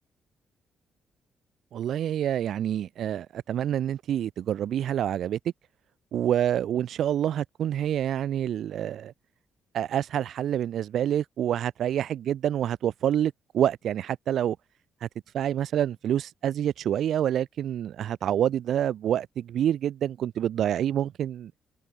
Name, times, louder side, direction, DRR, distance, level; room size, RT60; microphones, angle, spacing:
voice 1, 1.7-5.4 6.1-9.1 9.7-14.6 15.0-15.1 15.3-21.5, right 10 dB, 70° right, 1.7 m, -27 dB
cardioid pair, 90°, 0 cm